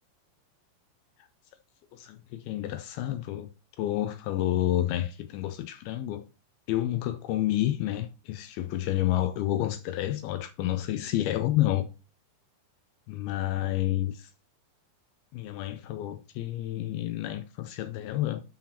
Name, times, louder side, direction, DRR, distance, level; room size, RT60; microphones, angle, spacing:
voice 1, 1.9-3.5 3.8-6.2 6.7-11.9 13.1-14.3 15.3-18.4, left 14 dB, 85° left, 2.2 m, -29 dB
11.5 x 5.8 x 2.8 m
omnidirectional pair, 5.0 m